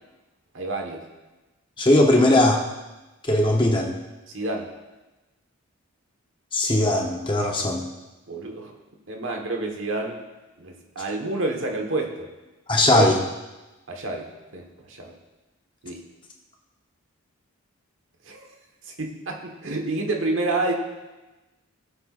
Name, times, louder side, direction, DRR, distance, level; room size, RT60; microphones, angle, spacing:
voice 1, 0.5-1.0 4.3-4.7 8.3-8.7 9.1-10.2 10.6-12.3 12.9-13.1 13.9-15.2 15.8-16.0 18.3-18.5 19.0-20.7, right 2 dB, 60° right, 2 dB, 1.4 m, -29 dB
voice 2, 1.8-2.6 3.3-3.9 6.5-7.8 12.7-13.2, left 1 dB, 20° left, 1 dB, 0.9 m, -19 dB
17.5 x 8.1 x 2.5 m, 1.1 s
head